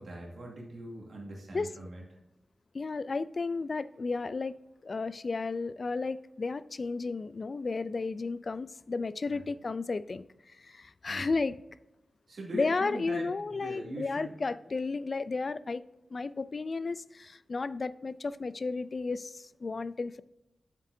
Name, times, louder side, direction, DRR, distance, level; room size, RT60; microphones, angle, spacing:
voice 1, 0.0-2.0 9.3-9.5 11.1-11.3 12.3-14.4, right 1 dB, 75° right, 2.6 m, -42 dB
voice 2, 2.7-4.6 4.8-11.6 12.5-15.8 16.1-20.2, left 3 dB, 55° left, 0.3 m, -33 dB
7.4 x 7.3 x 2.7 m
cardioid pair, 65°, 0 cm